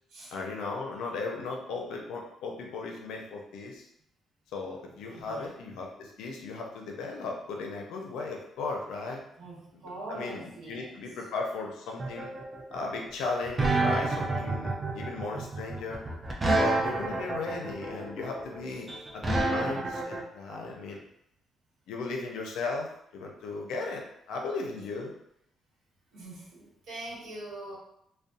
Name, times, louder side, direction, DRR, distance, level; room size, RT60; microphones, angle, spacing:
voice 1, 0.3-3.8 4.5-9.2 10.1-12.3 12.7-16.0 16.6-18.9 19.1-21.0 21.9-24.0 24.3-25.1, left 3 dB, 85° left, 0 dB, 0.5 m, -36 dB
voice 2, 5.0-5.5 9.4-11.0 16.9-17.5 24.8-24.9 26.1-27.8, right 2 dB, 80° right, -5 dB, 1.1 m, -43 dB
sound 1, 12.0-20.2, right 2 dB, 25° right, 0.5 m, -28 dB
2.6 x 2.1 x 2.5 m, 0.76 s
cardioid pair, 90°, 0 cm